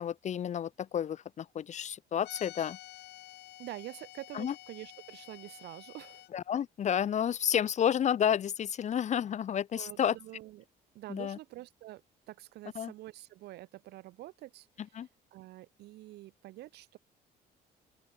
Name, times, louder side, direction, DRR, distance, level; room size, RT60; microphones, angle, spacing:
voice 1, 0.0-2.8 4.3-4.5 6.3-10.2 11.1-11.4 12.7-12.9 14.9-15.1, left 9 dB, 45° left, 0.9 m, -30 dB
sound 1, 2.2-6.3, left 16 dB, 80° left, 3.8 m, -50 dB
voice 2, 3.6-6.2 9.7-10.7 10.9-12.0 12.3-14.7 14.9-15.0 15.3-17.0, right 16 dB, 80° right, 4.2 m, -47 dB
open air
cardioid pair, 110°, 17 cm